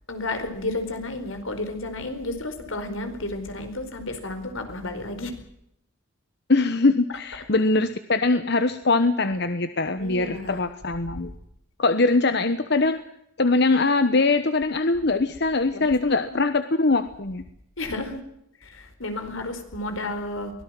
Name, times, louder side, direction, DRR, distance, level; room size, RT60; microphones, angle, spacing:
voice 1, 0.1-5.3 10.0-10.7 15.7-15.9 16.2-16.4 17.8-18.2 18.6-20.5, left 2 dB, 80° left, 7 dB, 4.7 m, -32 dB
voice 2, 6.5-11.3 11.8-13.0 13.4-17.5, left 3 dB, 55° left, 10 dB, 1.1 m, -22 dB
23.5 x 17.5 x 7.7 m, 0.77 s
head